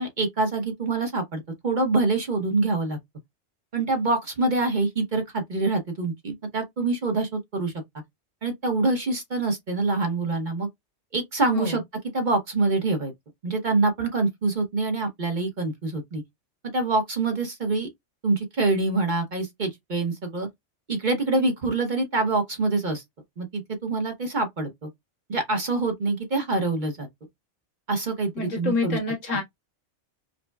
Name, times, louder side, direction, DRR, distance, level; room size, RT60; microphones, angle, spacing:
voice 1, 0.0-3.0 3.7-7.7 8.4-10.7 11.1-11.8 12.1-13.1 13.4-16.2 16.7-17.9 18.2-20.5 20.9-23.0 23.4-24.9 25.3-27.1 27.9-29.0 29.3-29.4, right 3 dB, 45° right, 0.9 m, -25 dB
voice 2, 28.3-29.4, left 3 dB, 80° left, 1.7 m, -27 dB
5.1 x 2.1 x 2.2 m
omnidirectional pair, 1.3 m